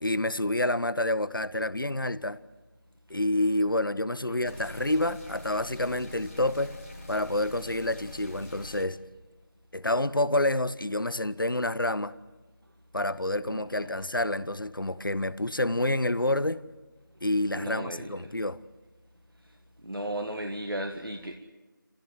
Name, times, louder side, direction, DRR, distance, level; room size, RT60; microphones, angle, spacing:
voice 1, 0.0-2.4 3.1-6.8 7.1-9.0 9.7-12.1 12.9-16.6 17.2-18.6, left 1 dB, 75° left, 1.0 m, -28 dB
sound 1, 4.5-8.9, left 2 dB, 40° left, 3.5 m, -45 dB
voice 2, 13.4-14.0 17.5-18.1 19.8-21.3, right 1 dB, 80° right, 1.8 m, -35 dB
27.5 x 16.0 x 7.9 m
figure-of-eight pair, 175°, 11 cm